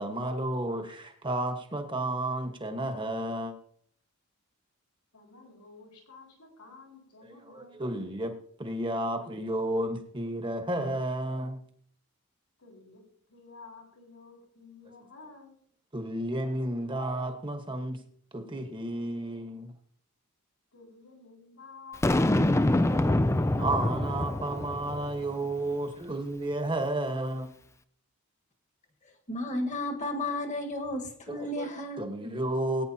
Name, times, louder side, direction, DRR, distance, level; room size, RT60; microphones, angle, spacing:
voice 1, 0.0-3.5 7.4-11.6 15.9-18.0 18.3-19.7 22.9-23.2 23.5-27.5 31.3-31.7 32.0-32.8, right 1 dB, 20° right, 1.3 m, -32 dB
voice 2, 5.1-7.9 12.6-13.0 13.3-15.6 20.7-23.4, left 3 dB, 85° left, 4.6 m, -52 dB
Boom, 22.0-25.3, left 1 dB, 10° left, 0.4 m, -25 dB
voice 3, 29.3-32.0, left 1 dB, 35° left, 1.6 m, -33 dB
19.0 x 9.5 x 2.9 m
head